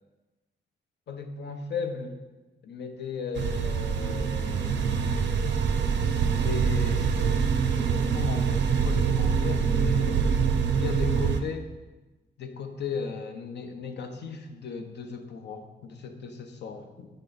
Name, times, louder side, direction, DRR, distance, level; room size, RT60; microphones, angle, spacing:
voice 1, 1.1-2.2 2.6-5.4 6.2-7.1 8.1-10.2 10.8-11.7 12.4-17.1, left 5 dB, 70° left, 6 dB, 0.7 m, -36 dB
sound 1, 3.4-11.4, right 6 dB, 75° right, 0.5 m, -25 dB
8.8 x 3.3 x 4.0 m, 1.2 s
cardioid pair, 95°, 19 cm